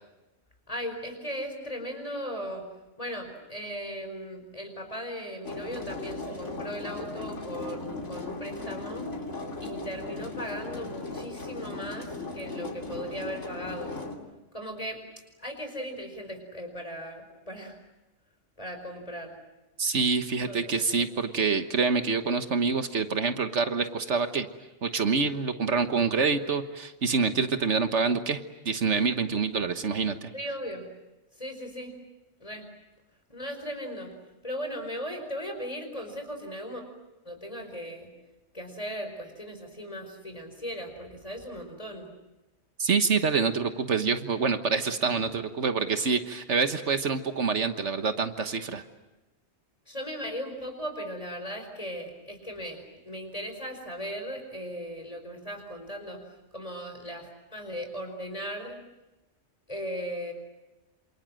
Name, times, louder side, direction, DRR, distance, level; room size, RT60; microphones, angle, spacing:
voice 1, 0.7-2.7 3.0-9.1 9.6-13.9 14.5-15.0 15.4-17.8 18.6-19.4 20.4-20.8 30.3-30.9 31.4-31.9 32.4-32.7 33.3-34.1 34.4-36.9 37.2-38.1 38.5-42.1 49.9-56.2 56.5-58.8 59.7-60.3, equal, 30° left, 5 dB, 5.2 m, -37 dB
sound 1, 5.5-14.2, left 3 dB, 80° left, 3.5 m, -37 dB
voice 2, 19.8-24.5 24.8-30.3 42.8-48.8, right 5 dB, 70° right, 8 dB, 1.6 m, -26 dB
28.5 x 27.0 x 7.7 m, 1.0 s
omnidirectional pair, 1.2 m